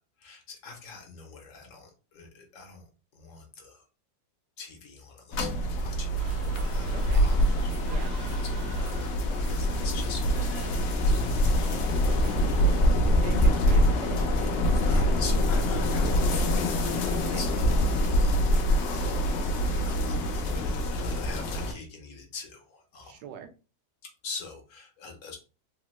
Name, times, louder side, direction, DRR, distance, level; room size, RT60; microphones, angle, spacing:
voice 1, 0.2-2.8 3.1-3.8 4.6-6.3 6.6-7.7 8.3-11.3 11.5-11.9 13.5-13.6 14.9-19.5 19.8-23.2 24.2-25.4, left 4 dB, 60° left, 3 dB, 0.9 m, -44 dB
sound 1, 5.3-21.7, equal, 85° left, 0.6 m, -25 dB
sound 2, 6.2-12.7, right 4 dB, 50° right, 0.8 m, -48 dB
voice 2, 6.9-7.3 7.8-8.2 12.1-12.7 12.9-15.0 17.1-17.4 23.0-23.5, right 6 dB, 75° right, 6 dB, 1.1 m, -43 dB
3.5 x 2.0 x 3.0 m, 0.34 s
omnidirectional pair, 1.8 m